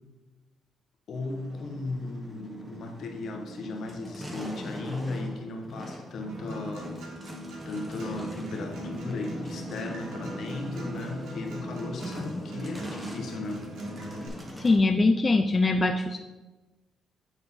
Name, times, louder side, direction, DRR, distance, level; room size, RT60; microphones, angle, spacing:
voice 1, 1.1-7.4 7.6-13.7, left 2 dB, 65° left, 2 dB, 1.2 m, -36 dB
sound 1, 1.1-14.8, equal, 15° right, 1.2 m, -41 dB
Acoustic guitar, 6.3-14.3, right 1 dB, 80° right, 2.0 m, -41 dB
voice 2, 14.6-16.2, left 3 dB, 30° left, 6 dB, 0.4 m, -22 dB
9.1 x 3.8 x 4.1 m, 1.2 s
cardioid pair, 90°, 0 cm